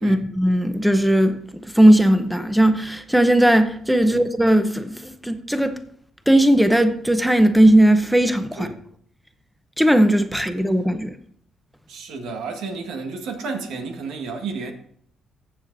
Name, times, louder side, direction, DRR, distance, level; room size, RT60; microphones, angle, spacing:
voice 1, 0.0-5.8 6.3-8.7 9.8-11.1, right 1 dB, 5° right, 0.8 m, -17 dB
voice 2, 11.9-14.7, right 4 dB, 85° right, 1.6 m, -32 dB
14.5 x 7.5 x 2.7 m
cardioid pair, 90°, 0 cm